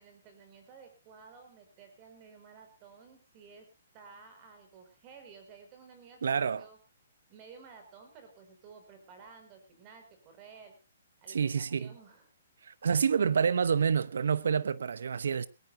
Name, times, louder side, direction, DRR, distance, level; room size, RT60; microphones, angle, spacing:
voice 1, 0.0-3.7 3.9-6.8 7.3-10.7 11.2-12.3, right 5 dB, 25° right, 5.5 m, -54 dB
voice 2, 6.2-6.6 11.3-11.9 12.6-15.5, right 6 dB, 75° right, 0.9 m, -28 dB
20.5 x 18.5 x 2.7 m
hypercardioid pair, 165°, 0 cm